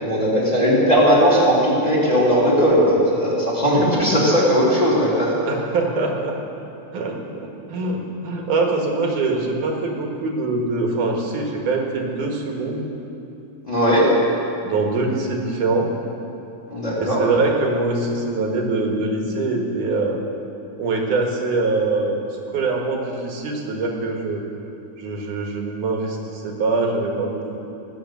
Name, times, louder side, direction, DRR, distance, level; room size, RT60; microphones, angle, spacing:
voice 1, 0.0-5.3 13.7-14.1 16.7-17.2, equal, 10° left, -5 dB, 3.2 m, -18 dB
voice 2, 5.5-6.4 6.9-12.9 14.6-15.9 17.0-20.2 20.8-24.4 25.0-27.6, right 3 dB, 80° right, 1 dB, 3.1 m, -23 dB
18.0 x 9.0 x 6.9 m, 2.8 s
omnidirectional pair, 3.6 m